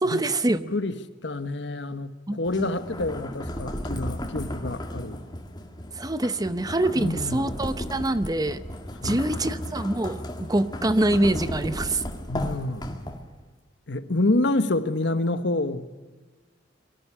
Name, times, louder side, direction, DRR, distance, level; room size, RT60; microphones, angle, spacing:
voice 1, 0.0-0.7 2.3-2.7 5.9-8.6 9.0-12.0, right 1 dB, 20° right, 0.8 m, -25 dB
voice 2, 0.7-5.2 7.0-7.6 9.0-9.5 12.3-13.1 13.9-15.9, left 2 dB, 70° left, 1.2 m, -28 dB
sound 1, 2.4-13.4, left 1 dB, 25° left, 2.1 m, -35 dB
23.5 x 13.5 x 9.8 m
head